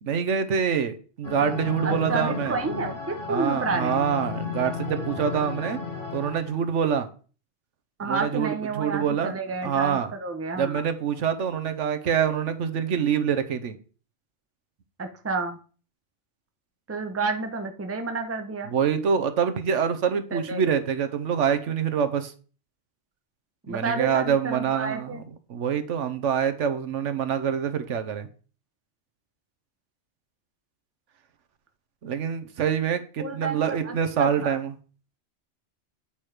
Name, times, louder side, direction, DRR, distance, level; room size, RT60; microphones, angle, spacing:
voice 1, 0.0-2.6 3.3-5.8 6.1-7.1 8.0-9.4 9.6-10.1 10.6-13.8 18.7-22.3 23.7-25.2 25.5-28.3 32.0-34.7, right 7 dB, 80° right, 9 dB, 1.2 m, -25 dB
sound 1, 1.2-6.6, left 5 dB, 45° left, 2.1 m, -34 dB
voice 2, 1.8-4.1 8.0-10.8 15.0-15.6 16.9-18.7 20.3-20.7 23.6-25.2 33.2-34.6, right 3 dB, 15° right, 6 dB, 0.7 m, -30 dB
8.7 x 4.5 x 4.9 m, 0.39 s
omnidirectional pair, 1.2 m